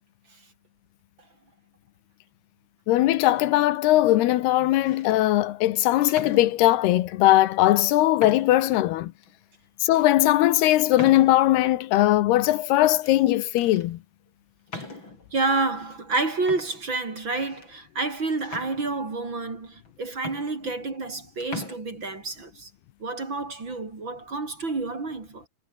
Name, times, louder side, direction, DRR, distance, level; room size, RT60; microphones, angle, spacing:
voice 1, 2.9-9.1 9.8-14.0, left 15 dB, 80° left, 3.1 m, -20 dB
sound 1, 3.3-3.8 4.6-5.2 6.0-7.0 7.7-7.8 8.2-8.7 9.2-9.3 9.9-10.1 11.0-11.6 12.7-13.2 13.6-13.9 14.7-15.3 16.1-16.2 16.5-17.7 18.4-19.3 19.9-20.0 20.2-21.2 21.4-21.8, left 3 dB, 30° left, 6.4 m, -41 dB
voice 2, 15.3-22.7 23.0-25.5, right 3 dB, 30° right, 3.9 m, -29 dB
omnidirectional pair, 4.6 m